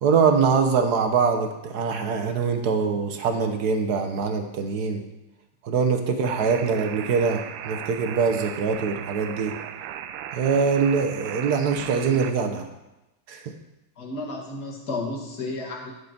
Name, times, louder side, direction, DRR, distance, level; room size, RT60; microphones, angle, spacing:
voice 1, 0.0-5.0 5.6-9.6 10.3-12.6 13.3-13.5, right 5 dB, 60° right, 6 dB, 1.2 m, -23 dB
sound 1, 6.2-12.3, right 10 dB, 85° right, 1.5 m, -36 dB
voice 2, 14.0-15.9, left 2 dB, 50° left, -1 dB, 2.1 m, -32 dB
12.0 x 5.3 x 5.9 m, 0.98 s
omnidirectional pair, 2.4 m